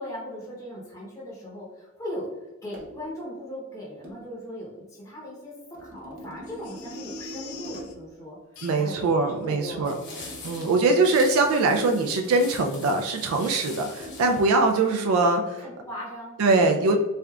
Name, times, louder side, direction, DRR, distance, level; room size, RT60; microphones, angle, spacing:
voice 1, 0.0-2.3 2.6-5.5 5.8-10.3 15.6-16.9, equal, 15° left, -5 dB, 0.7 m, -38 dB
sound 1, 2.7-3.0 4.0-4.2 5.7-8.1 10.2-12.2 14.0-14.3, right 1 dB, 40° right, 0.7 m, -42 dB
Crying sobbing, 6.4-7.9 8.5-9.0 9.4-9.5 9.8-10.0 10.4-10.6 10.9-11.0, left 8 dB, 80° left, 0.5 m, -45 dB
voice 2, 8.6-9.9 10.4-15.6 16.4-17.0, right 3 dB, 75° right, 3 dB, 0.3 m, -22 dB
sound 2, 9.8-15.1, left 3 dB, 50° left, 1.0 m, -43 dB
3.6 x 3.3 x 2.3 m, 1.2 s
head